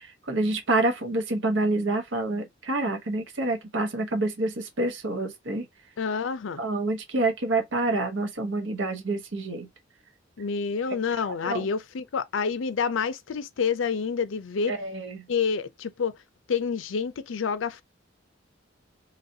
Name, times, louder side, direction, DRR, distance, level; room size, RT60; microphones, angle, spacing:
voice 1, 0.0-5.6 6.6-9.7 11.2-11.6 14.7-15.2, right 2 dB, 70° right, 1.0 m, -27 dB
voice 2, 6.0-6.6 10.4-14.7 15.3-16.1 16.5-17.8, left 5 dB, 80° left, 0.5 m, -28 dB
4.0 x 3.1 x 2.6 m
head